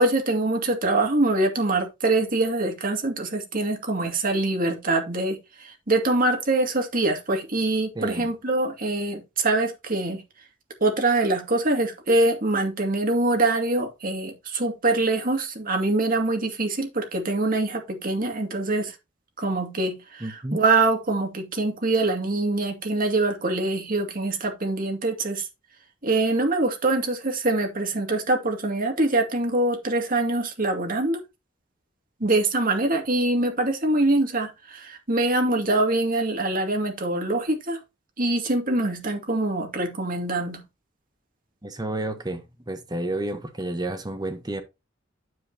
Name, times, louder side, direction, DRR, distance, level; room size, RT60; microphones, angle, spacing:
voice 1, 0.0-10.2 10.8-18.9 19.4-25.5 26.0-31.2 32.2-37.8 38.2-40.6, right 2 dB, 50° right, 2.3 m, -24 dB
voice 2, 7.9-8.3 20.2-20.6 41.6-44.6, right 1 dB, 20° right, 1.2 m, -31 dB
9.5 x 7.4 x 2.9 m
head